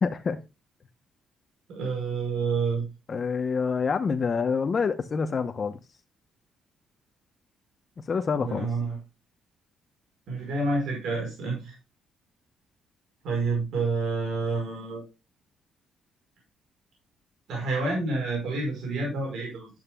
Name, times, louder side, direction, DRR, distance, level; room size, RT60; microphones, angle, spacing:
voice 1, 0.0-0.4 3.1-5.8 8.1-8.7, left 5 dB, 40° left, 0.9 m, -27 dB
voice 2, 1.7-2.9 8.4-9.0 10.3-11.7 13.2-15.0 17.5-19.7, right 3 dB, 75° right, 5.1 m, -28 dB
10.5 x 9.0 x 2.3 m
cardioid pair, 90°, 0 cm